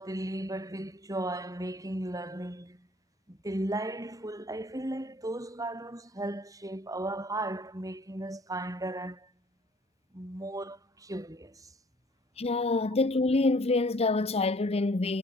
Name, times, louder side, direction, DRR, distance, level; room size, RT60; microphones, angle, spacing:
voice 1, 0.0-2.9 3.3-9.3 10.1-11.7, right 1 dB, 15° right, 2.8 m, -36 dB
voice 2, 12.4-15.2, left 3 dB, 30° left, 0.7 m, -26 dB
head